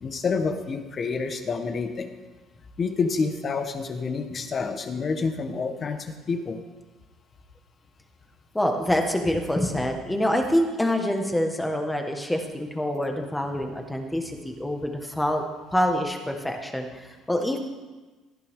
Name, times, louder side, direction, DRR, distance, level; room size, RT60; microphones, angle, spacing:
voice 1, 0.0-2.1 2.8-6.6, left 4 dB, 30° left, 7 dB, 1.3 m, -28 dB
voice 2, 8.5-15.4 15.7-17.6, left 1 dB, 5° left, 3 dB, 1.7 m, -26 dB
18.5 x 14.0 x 3.8 m, 1.2 s
cardioid pair, 145°, 0 cm